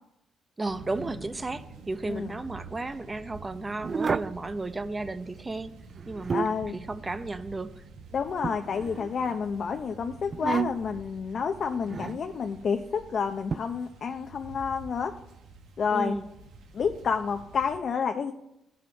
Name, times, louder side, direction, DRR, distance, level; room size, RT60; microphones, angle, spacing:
voice 1, 0.6-5.7 6.1-7.8 15.9-16.3, right 2 dB, 20° right, 0.7 m, -34 dB
sound 1, 0.6-17.8, right 4 dB, 80° right, 1.3 m, -48 dB
sound 2, 3.8-4.4 5.9-6.7 8.4-9.3 10.3-11.0 11.9-12.2 13.5-13.6, right 5 dB, 40° right, 0.3 m, -31 dB
voice 2, 6.3-6.8 8.1-15.1 15.8-16.2 16.7-18.3, left 6 dB, 50° left, 0.6 m, -29 dB
15.0 x 5.7 x 5.2 m
cardioid pair, 90°, 0 cm